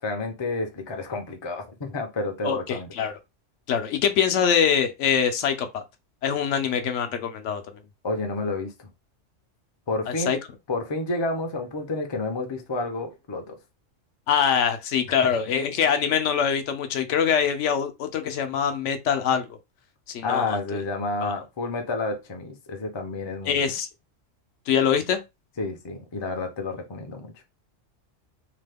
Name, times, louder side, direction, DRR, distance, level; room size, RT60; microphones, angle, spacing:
voice 1, 0.0-2.9 8.0-8.9 9.9-10.3 10.7-13.6 20.2-23.7 25.6-27.4, left 3 dB, 35° left, 0.4 m, -30 dB
voice 2, 2.4-3.1 3.7-5.8 6.2-7.6 10.1-10.4 14.3-19.5 20.1-20.6 21.2-21.3 23.5-23.9 24.7-25.2, left 7 dB, 75° left, 0.9 m, -24 dB
2.9 x 2.2 x 3.3 m
omnidirectional pair, 1.3 m